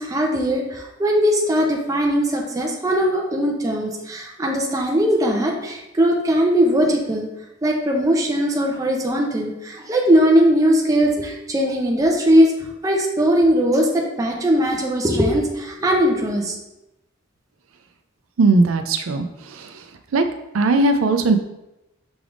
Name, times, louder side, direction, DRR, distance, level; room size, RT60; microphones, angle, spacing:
voice 1, 0.0-7.3 7.6-12.5 12.8-16.6, equal, 15° right, 0 dB, 0.5 m, -19 dB
voice 2, 18.4-19.7 20.1-20.2 20.5-21.4, right 3 dB, 80° right, 7 dB, 0.4 m, -18 dB
6.0 x 3.4 x 2.5 m, 0.91 s
head